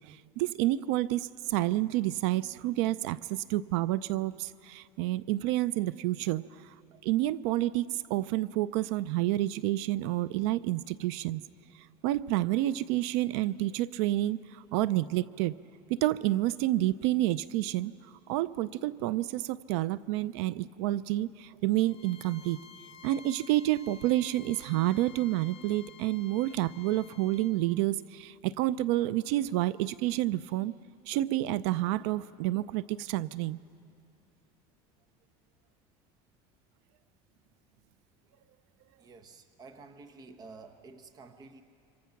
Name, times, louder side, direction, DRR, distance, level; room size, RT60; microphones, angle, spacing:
voice 1, 0.0-6.4 7.0-11.4 12.0-15.5 15.9-17.9 18.3-22.6 23.0-30.7 31.1-33.6, right 15 dB, 80° right, 18 dB, 0.5 m, -29 dB
Bowed string instrument, 21.8-27.6, left 7 dB, 40° left, 1.8 m, -53 dB
voice 2, 39.0-41.6, right 4 dB, 25° right, 8 dB, 1.0 m, -50 dB
27.0 x 25.0 x 5.9 m, 2.5 s
cardioid pair, 155°, 14 cm